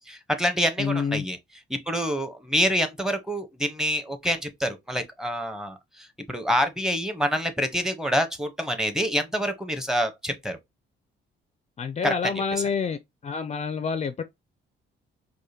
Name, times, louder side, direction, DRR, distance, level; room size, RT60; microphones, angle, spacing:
voice 1, 0.1-1.4 1.7-10.6 12.0-12.1, equal, ahead, 0.9 m, -27 dB
voice 2, 0.8-1.2 11.8-13.0 13.2-14.2, left 5 dB, 35° left, 0.4 m, -27 dB
4.8 x 2.2 x 2.8 m
cardioid pair, 90°, 20 cm